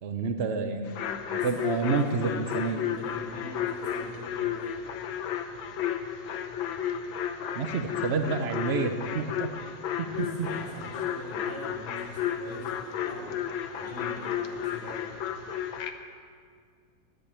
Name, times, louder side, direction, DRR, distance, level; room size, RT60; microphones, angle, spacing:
voice 1, 0.0-1.0 1.3-2.8 7.6-9.5 10.0-10.5, right 5 dB, 85° right, 7 dB, 0.5 m, -29 dB
sound 1, 0.9-15.9, left 9 dB, 80° left, 1.6 m, -33 dB
voice 2, 1.3-4.6 10.1-13.4 13.7-15.2, equal, 15° right, -6 dB, 4.3 m, -43 dB
10.0 x 9.1 x 9.9 m, 2.1 s
omnidirectional pair, 2.1 m